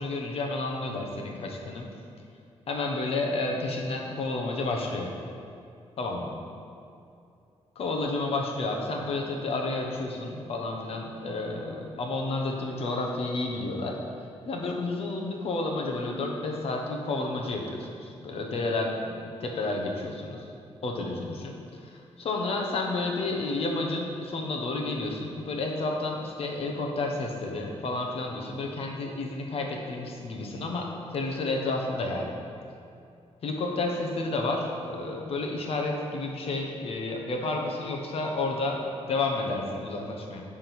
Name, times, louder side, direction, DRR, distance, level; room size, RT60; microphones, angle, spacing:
voice 1, 0.0-1.9 2.7-5.1 6.0-6.3 7.8-14.0 14.5-20.5 20.8-32.4 33.4-40.4, left 2 dB, 60° left, 1 dB, 1.2 m, -31 dB
10.5 x 3.8 x 6.1 m, 2.6 s
wide cardioid pair, 135°, 11 cm